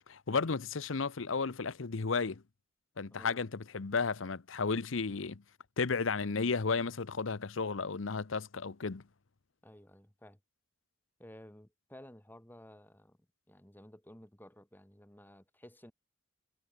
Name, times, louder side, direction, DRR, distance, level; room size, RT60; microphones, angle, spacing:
voice 1, 0.1-2.4 3.0-5.4 5.8-9.0, left 4 dB, 70° left, 0.8 m, -33 dB
voice 2, 3.1-3.5 9.6-10.4 11.2-13.2 13.5-15.9, left 1 dB, 10° left, 2.0 m, -54 dB
head